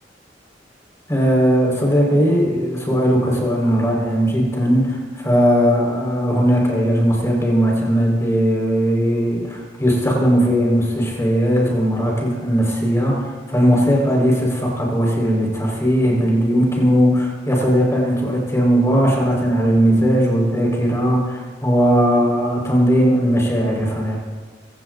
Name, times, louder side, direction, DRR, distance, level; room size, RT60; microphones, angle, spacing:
voice 1, 1.1-24.2, equal, 15° left, -1 dB, 4.9 m, -18 dB
25.5 x 17.0 x 2.7 m, 1.5 s
head